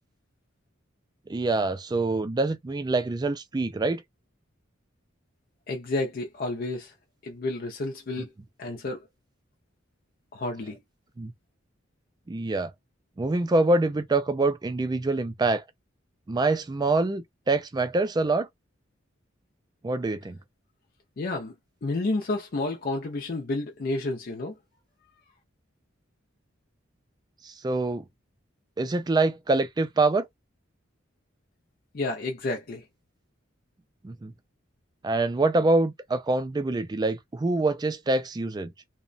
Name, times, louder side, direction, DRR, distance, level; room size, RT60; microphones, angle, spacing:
voice 1, 1.3-4.0 11.2-11.3 12.3-12.7 13.2-15.6 16.3-18.5 19.8-20.4 27.4-28.0 28.8-30.3 34.0-34.3 35.0-38.7, right 2 dB, 20° right, 0.3 m, -25 dB
voice 2, 5.7-6.9 7.2-8.3 8.6-9.1 10.3-10.8 21.2-21.5 21.8-24.6 31.9-32.8, left 2 dB, 50° left, 0.5 m, -30 dB
2.8 x 2.1 x 2.5 m
head